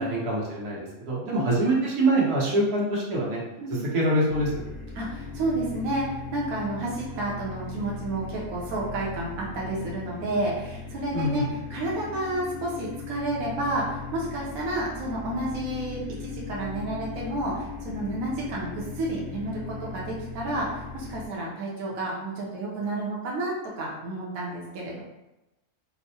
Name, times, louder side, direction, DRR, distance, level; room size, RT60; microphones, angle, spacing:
voice 1, 0.0-3.4 3.7-4.5 11.1-11.4, right 1 dB, 90° right, -5 dB, 1.5 m, -25 dB
sound 1, 4.3-21.3, left 4 dB, 40° left, 0.9 m, -38 dB
voice 2, 4.9-11.4 11.7-25.0, right 2 dB, 70° right, -4 dB, 1.1 m, -31 dB
4.4 x 2.1 x 2.7 m, 0.98 s
omnidirectional pair, 1.6 m